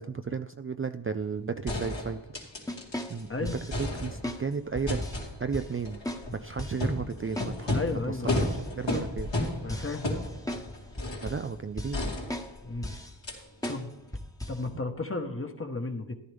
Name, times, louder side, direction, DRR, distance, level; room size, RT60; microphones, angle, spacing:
voice 1, 0.0-2.2 3.1-5.0 5.4-6.0 6.3-8.5 8.8-9.3 11.2-12.0, right 5 dB, 30° right, 9 dB, 0.4 m, -34 dB
sound 1, 1.2-1.3 1.7-3.2 3.5-4.4 4.9-11.4 11.9-12.8 13.2-13.4 13.6-13.7, left 1 dB, 75° left, 3.0 m, -33 dB
sound 2, 2.7-3.8 4.2-4.4 4.7-5.3 5.5-5.7 6.0-6.2 6.6-6.8 7.4-7.5 7.9-8.0 8.4-10.7 11.0-11.5 11.8-12.0 12.3-12.5 12.8-13.1 13.6-13.8 14.1-14.6, left 1 dB, 10° left, 1.1 m, -37 dB
voice 2, 7.7-8.4 9.6-10.0 12.6-12.9 13.7-13.9 14.5-16.1, left 3 dB, 30° left, 6 dB, 1.2 m, -33 dB
14.0 x 11.0 x 3.5 m, 0.83 s
wide cardioid pair, 65°, 44 cm